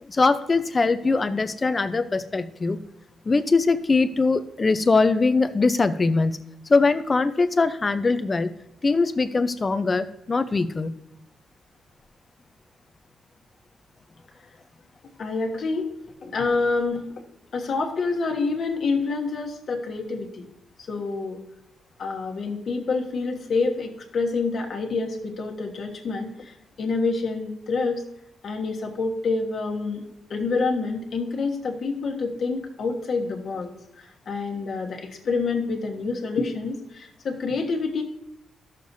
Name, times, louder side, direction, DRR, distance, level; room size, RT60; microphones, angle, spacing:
voice 1, 0.0-2.9 3.3-6.4 6.7-8.5 8.8-10.9, left 3 dB, 30° left, 11 dB, 0.6 m, -22 dB
voice 2, 15.2-15.9 16.2-17.2 17.5-20.5 20.8-21.4 22.0-28.0 28.4-30.0 30.3-33.7 34.0-38.0, left 4 dB, 55° left, 1 dB, 1.3 m, -27 dB
14.0 x 6.6 x 2.7 m, 0.84 s
cardioid pair, 105°, 0 cm